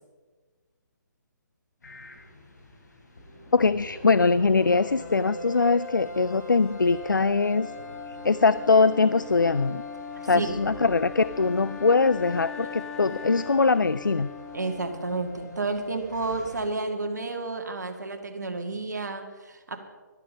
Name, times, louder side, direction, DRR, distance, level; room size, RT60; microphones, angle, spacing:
sound 1, 1.8-16.7, left 1 dB, 60° left, 3.4 m, -42 dB
voice 1, 3.5-7.7 8.2-9.8 10.2-14.3, left 4 dB, 80° left, 17 dB, 0.4 m, -22 dB
Wind instrument woodwind instrument, 7.6-15.6, left 8 dB, 5° left, 0.4 m, -42 dB
voice 2, 10.1-10.5 12.6-12.9 14.5-19.8, right 3 dB, 60° right, 5 dB, 1.8 m, -31 dB
12.5 x 11.5 x 6.5 m, 1.4 s
figure-of-eight pair, 135°, 10 cm